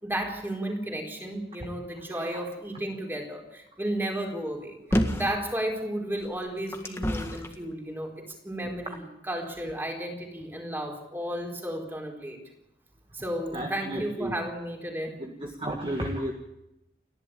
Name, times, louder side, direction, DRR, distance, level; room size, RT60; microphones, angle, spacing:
voice 1, 0.0-12.4 13.1-15.2, right 1 dB, 10° right, 2 dB, 4.2 m, -33 dB
sound 1, 4.9-5.4 6.2-7.5 8.3-8.4, equal, 15° left, 1.7 m, -28 dB
voice 2, 13.5-14.3 15.2-16.3, right 1 dB, 25° right, 2 dB, 1.8 m, -32 dB
29.5 x 12.0 x 8.7 m, 0.89 s
head